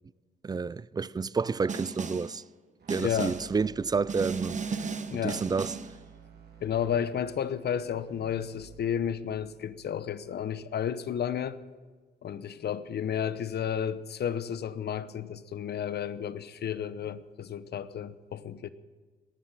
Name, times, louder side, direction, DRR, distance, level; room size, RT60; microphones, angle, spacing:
voice 1, 0.4-2.4 2.9-4.8 5.2-5.8, right 5 dB, 20° right, 0.4 m, -30 dB
Snare drum, 1.7-2.4 2.9-3.6 4.1-6.0, right 5 dB, 35° right, 1.2 m, -35 dB
sound 1, 2.8-10.9, right 5 dB, 55° right, 3.1 m, -54 dB
voice 2, 3.0-3.4 5.1-5.4 6.6-11.6 12.2-18.7, left 8 dB, 55° left, 0.9 m, -32 dB
19.5 x 7.4 x 9.8 m
cardioid pair, 90°, 20 cm